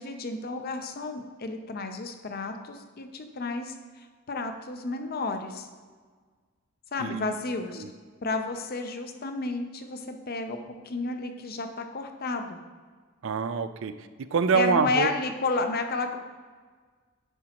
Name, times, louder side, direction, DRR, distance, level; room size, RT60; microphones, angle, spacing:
voice 1, 0.0-3.7 4.3-5.7 6.9-7.8 8.2-10.6 10.8-12.6 14.5-16.2, left 3 dB, 45° left, 6 dB, 0.6 m, -31 dB
voice 2, 7.0-7.3 7.8-7.9 13.2-15.1, right 6 dB, 60° right, 11 dB, 0.4 m, -26 dB
9.9 x 5.0 x 2.9 m, 1.5 s
head